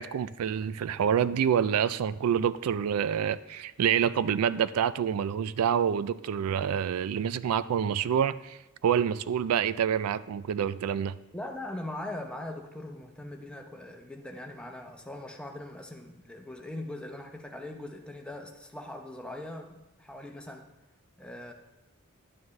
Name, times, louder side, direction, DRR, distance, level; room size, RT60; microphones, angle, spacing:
voice 1, 0.0-11.1, right 8 dB, 85° right, 16 dB, 0.3 m, -27 dB
voice 2, 11.3-20.7 21.2-21.5, left 1 dB, 5° left, 2 dB, 0.8 m, -41 dB
11.0 x 9.2 x 3.2 m, 0.98 s
head